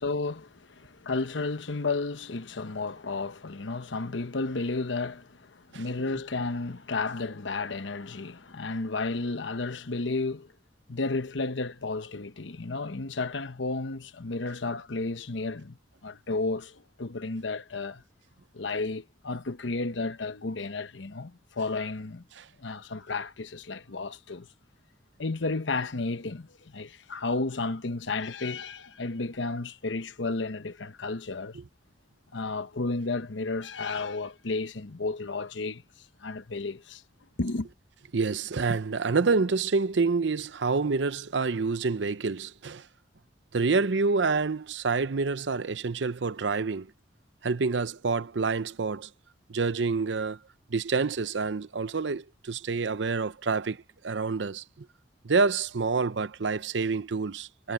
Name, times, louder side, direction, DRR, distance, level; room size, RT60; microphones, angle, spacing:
voice 1, 0.0-10.5 10.9-15.8 16.0-18.0 18.5-22.2 22.6-24.5 25.2-31.6 32.3-35.8 36.2-37.0 37.4-37.7, left 3 dB, 80° left, 1.0 m, -32 dB
voice 2, 38.1-42.8 43.5-46.9 47.4-49.1 49.5-50.4 50.7-54.9 55.2-57.7, right 4 dB, 70° right, 0.7 m, -27 dB
head